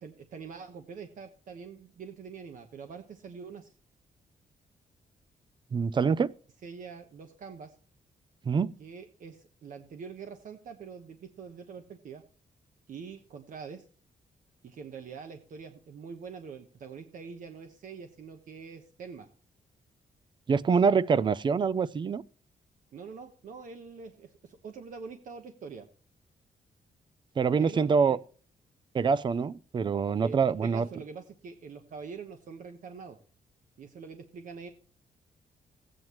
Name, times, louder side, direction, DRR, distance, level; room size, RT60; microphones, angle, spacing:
voice 1, 0.0-3.7 6.6-7.7 8.8-12.2 12.9-13.9 14.6-19.3 22.9-25.9 27.6-28.2 30.2-33.2 33.8-34.7, right 5 dB, 60° right, 1.1 m, -44 dB
voice 2, 5.7-6.3 8.5-8.7 20.5-22.2 27.4-28.2 28.9-30.9, right 5 dB, 30° right, 0.4 m, -25 dB
15.5 x 9.0 x 3.0 m
wide cardioid pair, 150°, 15 cm